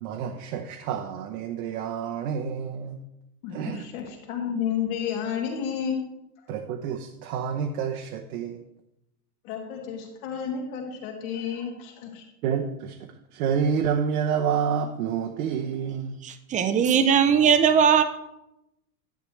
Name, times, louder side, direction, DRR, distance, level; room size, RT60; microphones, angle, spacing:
voice 1, 0.0-3.0 3.5-3.9 6.5-8.6 12.4-16.2, right 7 dB, 75° right, 4 dB, 0.9 m, -28 dB
voice 2, 3.4-6.0 9.4-12.2, left 7 dB, 65° left, 0 dB, 2.2 m, -31 dB
voice 3, 16.2-18.0, right 7 dB, 20° right, 10 dB, 0.5 m, -19 dB
10.5 x 9.5 x 3.2 m, 0.87 s
supercardioid pair, 135°, 44 cm